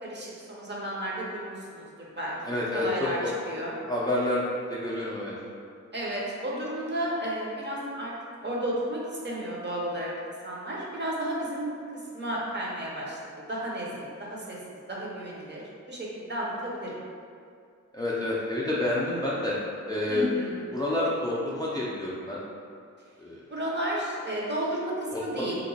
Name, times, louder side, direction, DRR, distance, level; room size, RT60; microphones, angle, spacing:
voice 1, 0.0-2.3 2.7-3.2 3.5-3.8 5.9-8.1 8.4-10.1 10.4-11.7 12.1-14.6 14.9-15.6 15.9-17.0 20.1-20.7 23.5-25.6, right 1 dB, 35° right, -4 dB, 0.6 m, -32 dB
voice 2, 2.4-3.3 3.9-4.4 4.7-5.3 17.9-19.6 19.9-20.3 20.7-22.4 23.2-23.4 25.1-25.4, left 1 dB, 15° left, -6 dB, 0.4 m, -28 dB
2.9 x 2.1 x 3.9 m, 2.3 s
wide cardioid pair, 110°, 30 cm